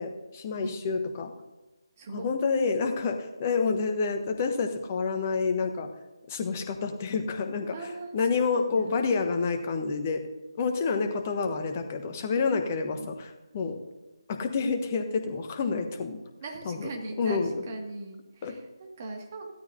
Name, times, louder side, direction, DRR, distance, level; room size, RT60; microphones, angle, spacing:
voice 1, 0.0-1.3 2.1-5.9 6.3-7.9 8.1-10.2 10.6-13.8 14.3-16.2 16.6-16.9 17.2-17.6 18.4-18.5, left 4 dB, 25° left, 6 dB, 1.1 m, -28 dB
voice 2, 7.7-8.9 10.6-11.1 12.7-13.1 16.4-19.5, right 2 dB, 30° right, 1 dB, 2.0 m, -40 dB
16.0 x 13.0 x 2.7 m, 1.1 s
figure-of-eight pair, 150°, 3 cm